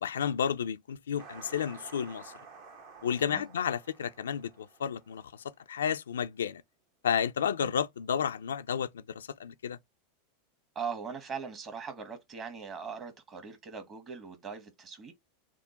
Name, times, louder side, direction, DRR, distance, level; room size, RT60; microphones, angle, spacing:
voice 1, 0.0-2.3 3.0-5.3 5.7-6.6 7.0-9.8, left 8 dB, 85° left, 0.3 m, -32 dB
sound 1, 1.2-5.5, right 5 dB, 60° right, 1.1 m, -52 dB
voice 2, 10.7-15.1, right 6 dB, 35° right, 1.3 m, -40 dB
3.6 x 2.1 x 3.9 m
hypercardioid pair, 100°, 0 cm